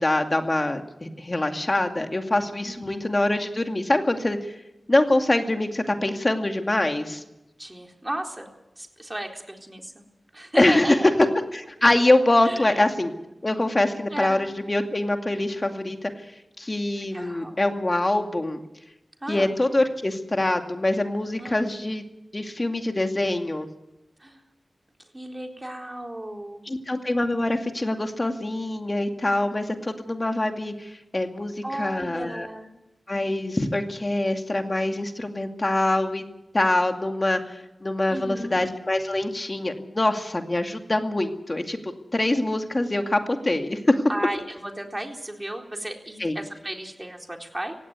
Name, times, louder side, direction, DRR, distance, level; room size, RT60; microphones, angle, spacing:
voice 1, 0.0-4.5 4.9-7.2 10.6-11.0 11.5-13.1 13.4-16.1 16.6-18.6 19.3-22.0 22.3-23.7 26.7-32.5 33.1-36.2 36.5-44.1 46.2-46.4, left 1 dB, 35° left, 5 dB, 2.3 m, -24 dB
voice 2, 2.6-3.1 7.6-8.5 8.8-10.0 10.3-11.3 12.4-12.8 14.1-14.5 17.1-17.7 19.2-19.5 21.4-21.6 24.2-24.4 25.1-26.7 31.6-32.7 38.1-38.6 44.1-47.8, right 1 dB, 20° right, 2 dB, 3.9 m, -34 dB
17.0 x 16.5 x 9.5 m, 0.94 s
cardioid pair, 45°, 0 cm